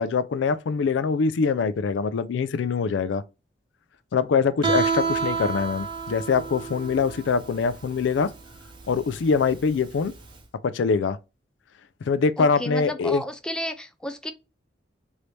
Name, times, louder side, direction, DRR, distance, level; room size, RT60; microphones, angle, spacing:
voice 1, 0.0-3.2 4.1-8.3 8.9-10.1 10.6-11.2 12.0-13.2, left 5 dB, 80° left, 0.4 m, -23 dB
Guitar, 4.6-10.3, right 5 dB, 25° right, 0.7 m, -29 dB
voice 2, 12.4-14.3, left 1 dB, 5° left, 0.4 m, -32 dB
3.2 x 2.7 x 3.0 m
head